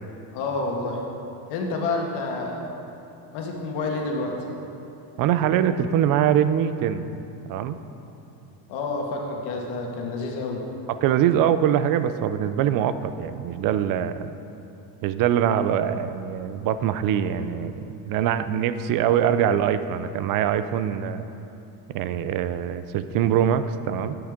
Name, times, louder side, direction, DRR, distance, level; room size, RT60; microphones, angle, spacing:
voice 1, 0.3-1.0 1.5-2.7 3.3-4.4 8.7-10.6, left 3 dB, 65° left, 0 dB, 1.7 m, -28 dB
voice 2, 5.2-7.1 7.5-7.8 11.0-14.4 15.0-17.7 18.0-21.2 21.9-24.2, right 9 dB, 50° right, 12 dB, 0.5 m, -23 dB
10.0 x 8.9 x 3.7 m, 2.8 s
cardioid pair, 140°, 44 cm